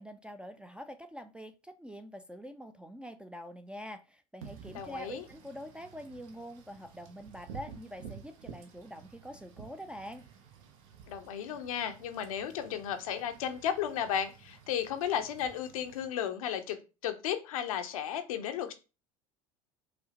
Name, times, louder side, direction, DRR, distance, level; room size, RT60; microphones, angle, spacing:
voice 1, 0.0-10.3, equal, 5° right, 0.3 m, -45 dB
Wind / Rain, 4.4-16.1, right 7 dB, 70° right, 0.7 m, -52 dB
voice 2, 4.7-5.2 11.1-18.7, left 9 dB, 80° left, 0.6 m, -34 dB
5.0 x 2.0 x 2.9 m
hypercardioid pair, 75°, 18 cm